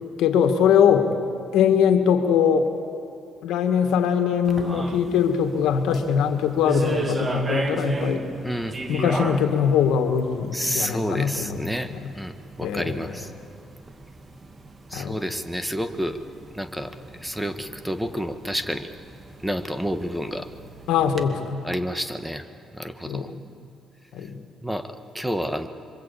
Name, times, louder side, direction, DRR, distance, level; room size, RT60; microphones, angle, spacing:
voice 1, 0.2-1.1 1.5-2.7 3.4-8.3 8.9-12.1 12.6-13.1 14.9-15.2 20.9-21.6 23.0-23.4 24.1-24.4, left 7 dB, 90° left, 6 dB, 2.1 m, -22 dB
sound 1, 4.4-21.2, right 2 dB, 30° right, 2.4 m, -36 dB
voice 2, 8.4-8.7 10.5-11.9 12.1-13.3 14.9-16.2 16.5-16.9 17.2-18.9 19.4-20.5 21.6-22.4 22.7-23.3 24.6-25.7, equal, 5° right, 8 dB, 1.6 m, -29 dB
27.0 x 25.0 x 8.6 m, 2.8 s
cardioid pair, 90°, 0 cm